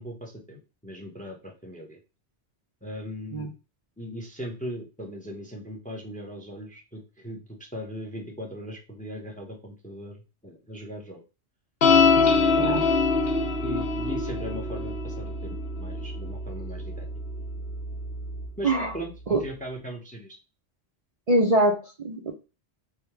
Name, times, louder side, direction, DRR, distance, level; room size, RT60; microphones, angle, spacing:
voice 1, 0.0-2.0 2.8-3.5 4.0-11.2 12.3-12.9 13.6-17.1 18.6-20.4, equal, 10° left, 1 dB, 0.6 m, -39 dB
sound 1, 11.8-18.5, left 4 dB, 65° left, 0.9 m, -25 dB
voice 2, 21.3-22.3, right 1 dB, 45° right, 0 dB, 0.6 m, -23 dB
3.6 x 2.2 x 4.4 m, 0.30 s
omnidirectional pair, 1.1 m